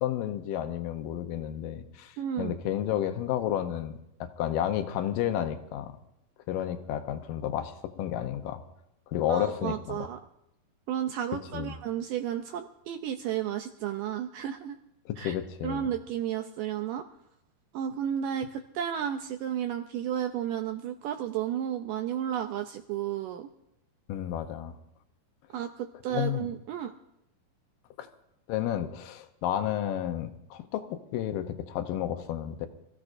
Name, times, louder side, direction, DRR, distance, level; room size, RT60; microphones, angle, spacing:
voice 1, 0.0-5.9 6.5-8.6 9.1-10.1 11.5-11.8 15.1-15.9 24.1-24.7 26.1-26.5 28.0-28.1 28.5-32.7, left 11 dB, 75° left, 7 dB, 2.4 m, -31 dB
voice 2, 2.2-2.6 9.3-10.2 10.9-14.8 15.2-15.4 15.6-17.1 17.7-23.5 25.5-27.0, right 10 dB, 80° right, 6 dB, 1.9 m, -32 dB
26.5 x 15.0 x 2.6 m, 0.81 s
omnidirectional pair, 4.5 m